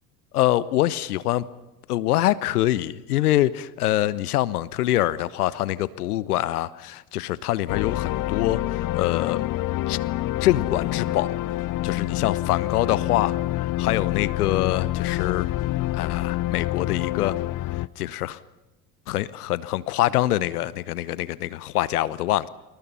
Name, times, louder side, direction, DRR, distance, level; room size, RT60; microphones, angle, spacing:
voice 1, 0.3-1.4 1.9-9.5 9.9-10.0 10.4-11.3 11.8-15.5 15.9-17.4 17.7-18.4 19.1-22.5, left 14 dB, 75° left, 19 dB, 1.0 m, -25 dB
sound 1, 7.7-17.9, left 16 dB, 45° left, 0.9 m, -27 dB
29.0 x 26.5 x 5.6 m, 1.0 s
hypercardioid pair, 70°, 46 cm